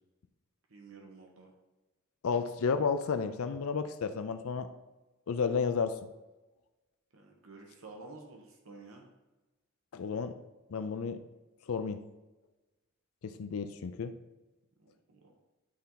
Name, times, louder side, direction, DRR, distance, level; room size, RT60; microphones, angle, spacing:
voice 1, 0.7-1.5 7.1-9.1 14.8-15.3, right 3 dB, 75° right, 1 dB, 1.1 m, -51 dB
voice 2, 2.2-4.7 5.3-6.0 9.9-10.3 10.7-11.2 11.7-12.0 13.2-14.1, left 5 dB, 85° left, 9 dB, 0.4 m, -32 dB
10.0 x 4.2 x 3.9 m, 1.1 s
head